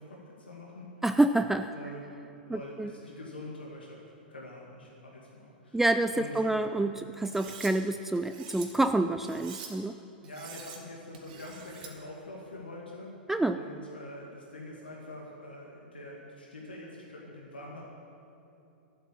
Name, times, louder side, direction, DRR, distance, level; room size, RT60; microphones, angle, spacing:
voice 1, 0.0-1.0 1.7-2.1 2.5-4.0 4.3-5.8 6.1-6.7 10.2-13.2 13.5-17.8, left 1 dB, 80° left, -3 dB, 2.3 m, -44 dB
voice 2, 1.0-1.7 2.5-2.9 5.7-10.0 13.3-13.6, right 2 dB, 5° right, 9 dB, 0.4 m, -27 dB
Cutlery silverware, 7.2-7.7 8.2-8.7 9.2-9.7 10.2-10.8 11.1-11.9, right 7 dB, 60° right, 2.4 m, -45 dB
12.5 x 9.6 x 8.7 m, 2.9 s
figure-of-eight pair, 100°, 5 cm